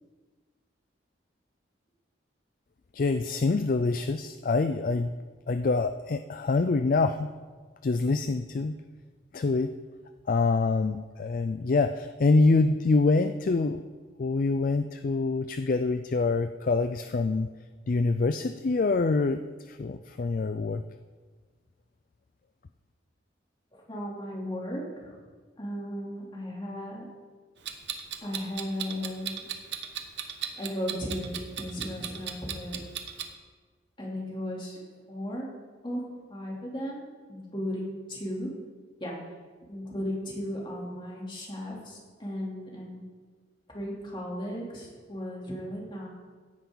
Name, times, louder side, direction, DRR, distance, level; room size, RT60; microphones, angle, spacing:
voice 1, 2.9-5.1 5.5-7.3 7.8-8.8 9.3-9.7 10.3-13.8 14.2-17.5 17.9-19.4 19.7-20.8, left 3 dB, 45° left, 9 dB, 0.4 m, -25 dB
voice 2, 23.9-25.2 25.6-27.1 28.2-29.5 30.6-32.8 34.0-34.8 35.1-35.5 35.8-36.0 36.3-38.5 39.0-39.1 39.7-43.0 43.7-46.1, equal, 25° left, -4 dB, 3.1 m, -35 dB
Clock, 27.6-33.3, right 9 dB, 65° right, 1.0 m, -37 dB
16.5 x 10.0 x 4.0 m, 1.4 s
head